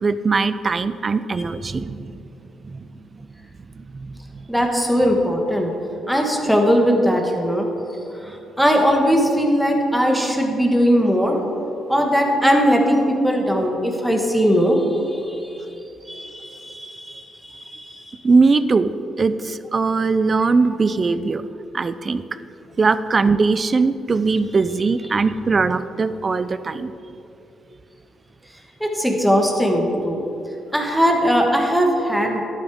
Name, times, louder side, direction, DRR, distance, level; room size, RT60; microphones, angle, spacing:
voice 1, 0.0-2.1 2.6-2.9 3.7-4.4 18.2-18.9 19.2-21.5 21.7-22.2 22.8-26.9, right 4 dB, 35° right, 13 dB, 0.4 m, -20 dB
voice 2, 4.5-5.7 6.1-7.7 8.2-11.4 11.9-15.5 16.1-18.2 28.8-30.2 30.7-32.4, equal, ahead, 1 dB, 1.5 m, -19 dB
11.0 x 9.3 x 3.6 m, 2.8 s
cardioid pair, 90°, 0 cm